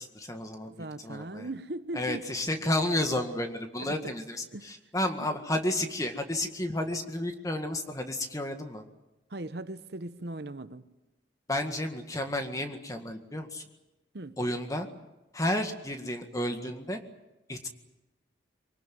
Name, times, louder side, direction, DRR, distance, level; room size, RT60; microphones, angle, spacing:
voice 1, 0.0-1.5 2.0-8.8 11.5-13.6 14.4-14.9 15.3-17.0 17.5-17.7, left 1 dB, 20° left, 1.8 m, -32 dB
voice 2, 0.7-2.2 3.8-4.0 4.5-4.7 5.2-5.3 9.3-10.8 14.1-14.4, right 2 dB, 60° right, 1.0 m, -39 dB
24.5 x 18.5 x 9.3 m
head